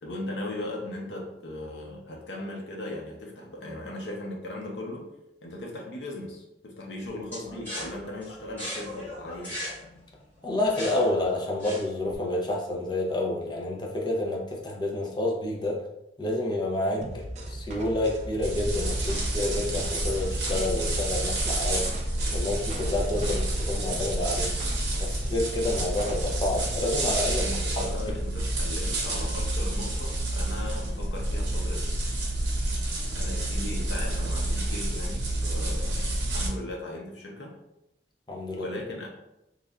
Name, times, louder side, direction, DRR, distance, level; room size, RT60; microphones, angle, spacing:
voice 1, 0.0-5.1 5.4-9.6 27.4-31.9 33.1-37.6 38.6-39.1, left 1 dB, 80° left, 0 dB, 0.7 m, -38 dB
sound 1, 7.3-12.2, left 1 dB, 10° left, 1.4 m, -38 dB
voice 2, 10.4-15.8 16.2-21.9 22.3-24.5 25.0-27.5 27.7-27.8 38.3-38.7, left 2 dB, 25° left, -1 dB, 0.5 m, -29 dB
sound 2, 17.0-26.7, right 1 dB, 40° right, 0.4 m, -39 dB
sound 3, 18.4-36.5, right 1 dB, 85° right, 0.8 m, -29 dB
3.1 x 2.4 x 2.3 m, 0.87 s
head